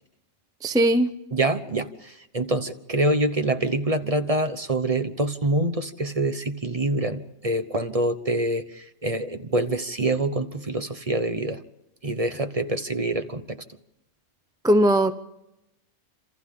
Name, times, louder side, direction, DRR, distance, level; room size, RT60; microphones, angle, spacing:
voice 1, 0.6-1.1 14.6-15.1, right 1 dB, 5° right, 9 dB, 0.4 m, -19 dB
voice 2, 1.3-11.6 12.0-13.6, right 2 dB, 30° right, 9 dB, 1.0 m, -26 dB
29.5 x 27.0 x 3.7 m, 0.91 s
omnidirectional pair, 1.5 m